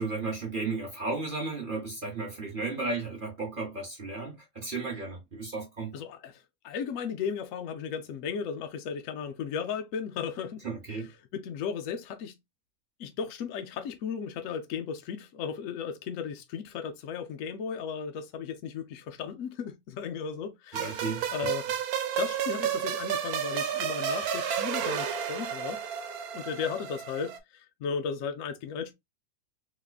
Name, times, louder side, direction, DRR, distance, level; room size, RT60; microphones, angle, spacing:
voice 1, 0.0-5.9 10.6-11.1 20.7-21.5, right 3 dB, 40° right, 0.9 m, -34 dB
voice 2, 5.9-12.3 13.0-21.7 22.2-25.8 26.3-28.9, left 6 dB, 70° left, 0.9 m, -35 dB
sound 1, 20.7-27.4, right 8 dB, 90° right, 1.2 m, -31 dB
3.5 x 3.1 x 2.3 m
omnidirectional pair, 1.5 m